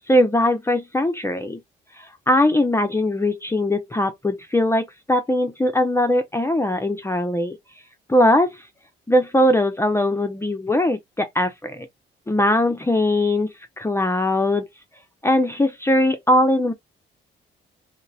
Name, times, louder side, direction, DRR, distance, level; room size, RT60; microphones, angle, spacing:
voice 1, 0.1-1.6 2.0-7.6 8.1-8.6 9.1-11.9 12.3-13.5 13.8-14.7 15.2-16.7, left 1 dB, 15° left, 0.5 m, -20 dB
2.9 x 2.0 x 2.6 m
cardioid pair, 90°, 20 cm